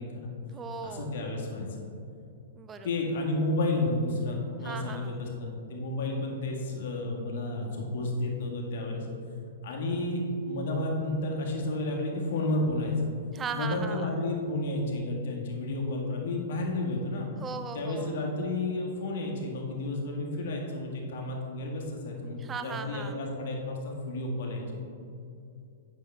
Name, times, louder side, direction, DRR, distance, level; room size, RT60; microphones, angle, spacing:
voice 1, 0.0-0.3 0.8-1.9 2.8-9.1 9.6-12.9 13.5-17.3 17.7-24.8, left 2 dB, 55° left, -1 dB, 1.7 m, -31 dB
voice 2, 0.5-1.1 2.6-2.9 4.6-5.2 13.3-14.1 17.4-18.1 22.4-23.2, right 5 dB, 20° right, 8 dB, 0.5 m, -38 dB
9.1 x 6.3 x 3.4 m, 2.6 s
figure-of-eight pair, 105°, 0 cm